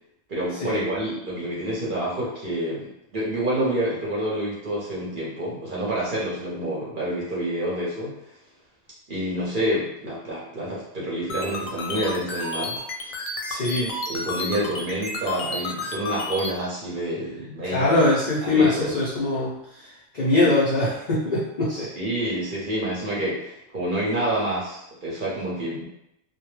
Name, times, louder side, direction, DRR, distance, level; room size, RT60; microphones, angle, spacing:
voice 1, 0.3-8.2 9.1-12.8 13.0-13.2 14.1-17.9 18.4-18.9 21.7-25.8, right 1 dB, 50° right, -6 dB, 0.7 m, -28 dB
sound 1, 11.3-16.5, left 2 dB, 85° left, 1.0 m, -31 dB
voice 2, 13.5-13.9 17.6-21.9, left 2 dB, 60° left, -7 dB, 0.4 m, -22 dB
2.2 x 2.1 x 3.0 m, 0.83 s
omnidirectional pair, 1.4 m